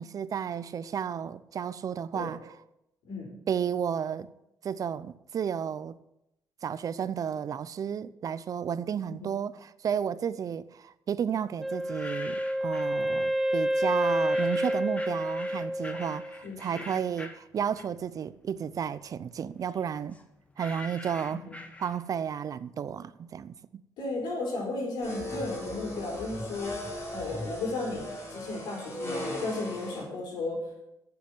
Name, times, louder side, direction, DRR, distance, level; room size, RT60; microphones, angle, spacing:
voice 1, 0.0-2.4 3.5-4.3 4.6-5.9 6.6-20.2 20.6-21.4 21.8-23.8, right 8 dB, 55° right, 0.6 m, -32 dB
Wind instrument woodwind instrument, 11.6-16.4, equal, ahead, 0.8 m, -29 dB
sound 1, 11.7-13.0 14.0-18.2 18.6-22.3, left 2 dB, 20° left, 1.5 m, -45 dB
voice 2, 16.4-16.9 21.4-21.6 24.0-30.9, left 2 dB, 85° left, 4.5 m, -35 dB
sound 2, 25.0-30.0, left 1 dB, 40° left, 4.8 m, -37 dB
9.4 x 7.0 x 9.0 m
cardioid pair, 85°, 7 cm